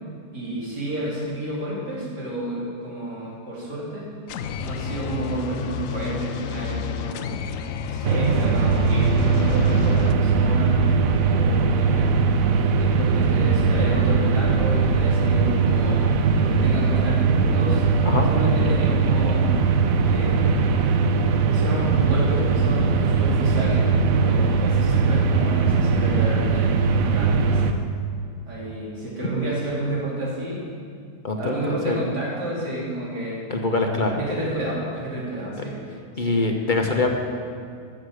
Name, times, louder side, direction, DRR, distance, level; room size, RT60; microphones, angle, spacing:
voice 1, 0.3-4.1 4.6-7.3 7.8-10.8 11.2-12.1 12.8-17.9 18.3-19.5 20.1-20.6 21.4-23.8 24.1-27.8 28.5-30.6 31.4-33.4 34.2-35.8 36.2-36.4, right 1 dB, 90° right, -6 dB, 3.7 m, -30 dB
sound 1, 4.3-10.1, left 7 dB, 65° left, 0.9 m, -30 dB
sound 2, 8.0-27.7, right 5 dB, 65° right, 1.1 m, -20 dB
voice 2, 31.2-32.0 33.5-34.2 36.2-37.1, left 3 dB, 35° left, 2 dB, 1.0 m, -23 dB
14.5 x 7.5 x 6.5 m, 2.3 s
omnidirectional pair, 1.7 m